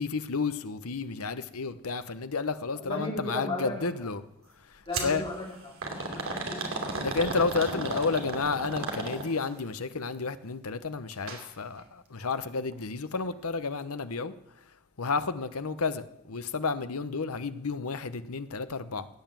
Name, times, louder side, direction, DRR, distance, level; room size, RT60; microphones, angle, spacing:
voice 1, 0.0-4.2 5.0-5.3 7.0-14.3 15.0-19.1, left 4 dB, 75° left, 0.9 m, -31 dB
voice 2, 2.8-3.9 4.9-6.7, left 1 dB, 25° left, 4.4 m, -36 dB
sound 1, 4.9-5.2 5.8-9.5 11.1-11.4 11.8-11.9 12.7-12.8, right 3 dB, 65° right, 2.8 m, -34 dB
16.0 x 9.2 x 7.5 m
head